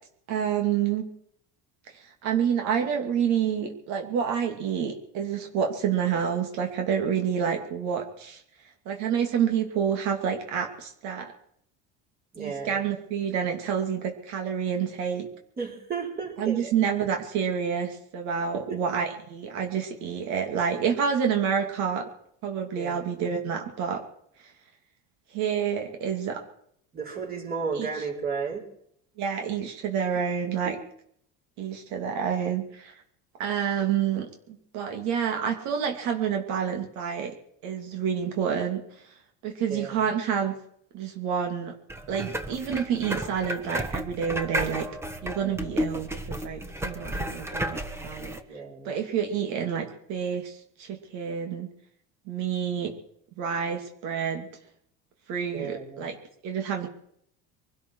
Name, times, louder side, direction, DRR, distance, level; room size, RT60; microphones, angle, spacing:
voice 1, 0.3-1.1 1.9-8.4 8.8-11.3 12.4-15.3 16.4-22.1 22.4-24.0 24.4-24.5 25.3-26.4 27.7-27.9 29.2-30.8 31.6-33.0 33.4-37.3 37.6-38.8 39.4-40.5 40.9-41.7 42.1-44.9 45.2-51.7 52.3-52.9 53.3-54.5 55.3-56.1 56.4-56.9, right 7 dB, 65° right, 4 dB, 2.7 m, -28 dB
voice 2, 12.3-12.9 15.6-16.7 18.5-18.8 22.8-23.0 26.9-28.7 30.6-30.8 39.7-40.0 48.5-48.9 55.5-56.1, right 5 dB, 30° right, 0 dB, 4.9 m, -33 dB
sound 1, 41.9-48.4, equal, 10° right, 1.2 m, -33 dB
23.5 x 12.5 x 4.8 m, 0.68 s
cardioid pair, 150°, 31 cm